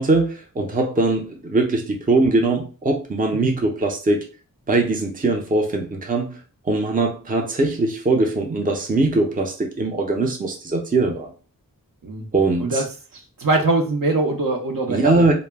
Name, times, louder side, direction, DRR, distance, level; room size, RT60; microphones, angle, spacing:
voice 1, 0.0-4.3 4.7-6.4 6.7-11.3 12.3-12.8 14.9-15.3, right 2 dB, 25° right, 0.5 m, -21 dB
voice 2, 13.1-15.2, right 2 dB, 65° right, 0.7 m, -22 dB
2.2 x 2.0 x 3.3 m
wide cardioid pair, 40°, 36 cm